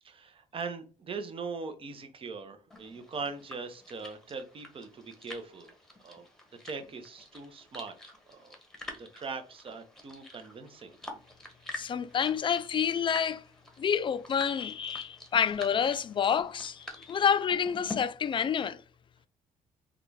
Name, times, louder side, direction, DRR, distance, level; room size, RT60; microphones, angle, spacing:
voice 1, 0.0-5.7 6.0-6.3 6.6-8.6 9.0-11.0, right 4 dB, 40° right, 0.7 m, -41 dB
sound 1, 2.7-18.0, left 2 dB, 5° left, 1.1 m, -47 dB
voice 2, 11.7-13.4 13.8-18.8, left 7 dB, 35° left, 0.3 m, -28 dB
3.7 x 2.3 x 3.2 m
cardioid pair, 90°, 15 cm